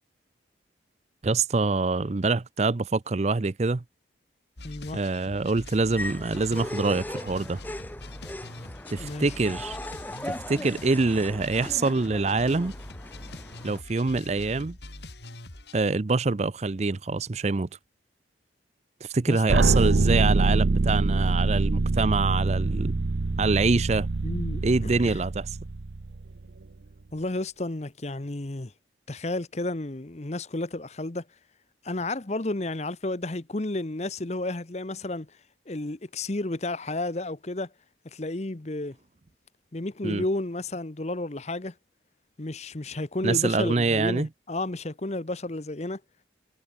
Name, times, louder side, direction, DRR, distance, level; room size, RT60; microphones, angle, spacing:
voice 1, 1.2-3.8 4.9-7.6 8.9-9.8 10.3-12.7 13.6-14.8 15.7-17.7 19.0-23.0 23.4-24.1 24.6-25.5 40.0-40.2 43.2-44.3, right 3 dB, 35° right, 0.5 m, -25 dB
sound 1, 4.6-15.8, left 2 dB, 65° left, 3.9 m, -43 dB
voice 2, 4.6-5.0 9.0-9.3 19.3-19.7 24.2-25.2 27.1-28.7 29.1-31.2 31.8-35.3 35.7-37.7 38.1-39.0 39.7-41.7 42.4-46.0, left 2 dB, 35° left, 0.9 m, -32 dB
sound 2, 6.0-13.8, left 1 dB, 10° left, 1.1 m, -38 dB
sound 3, 19.5-26.4, right 3 dB, 70° right, 0.7 m, -24 dB
head